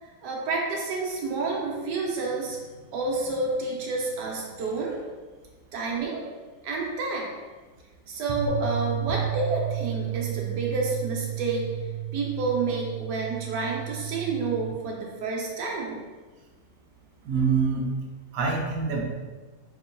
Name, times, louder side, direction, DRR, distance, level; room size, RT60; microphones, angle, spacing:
voice 1, 0.0-2.6 2.9-5.0 5.7-6.2 6.6-7.3 8.1-11.6 12.1-16.0, right 3 dB, 65° right, -2 dB, 1.1 m, -29 dB
sound 1, 8.5-14.7, right 12 dB, 50° right, 0.6 m, -33 dB
voice 2, 17.2-17.9 18.3-19.0, right 5 dB, 90° right, -1 dB, 0.8 m, -25 dB
3.0 x 2.9 x 3.7 m, 1.3 s
omnidirectional pair, 2.4 m